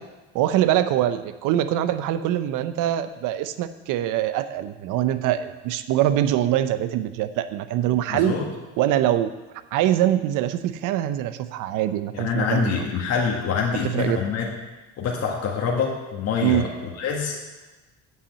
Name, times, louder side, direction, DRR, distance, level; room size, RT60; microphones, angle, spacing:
voice 1, 0.3-8.3 8.8-9.3 9.7-12.8 13.8-14.2 16.4-16.7, right 12 dB, 70° right, 12 dB, 0.7 m, -23 dB
voice 2, 8.1-8.4 12.1-14.5 15.0-16.7 17.0-17.4, left 6 dB, 50° left, -2 dB, 1.6 m, -25 dB
8.0 x 5.7 x 7.2 m, 1.2 s
supercardioid pair, 95°, 32 cm